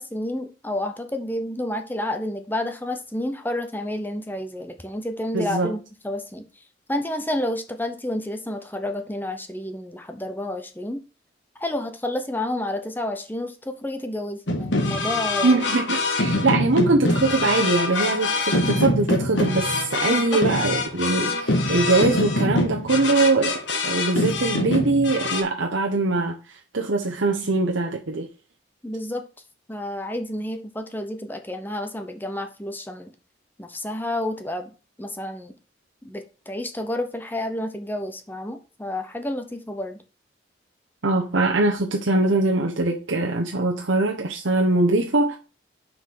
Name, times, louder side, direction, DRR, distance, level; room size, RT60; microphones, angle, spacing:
voice 1, 0.0-6.4 6.9-11.0 11.6-15.6 20.1-20.2 28.8-29.2 29.7-33.1 33.6-34.7 35.0-35.5 36.0-40.0, left 1 dB, 10° left, 0.8 m, -30 dB
voice 2, 5.3-5.7 15.4-26.4 26.7-28.3 41.0-45.4, right 2 dB, 85° right, 1.0 m, -22 dB
sound 1, 14.5-25.4, left 2 dB, 75° left, 1.6 m, -24 dB
6.0 x 5.2 x 6.4 m
head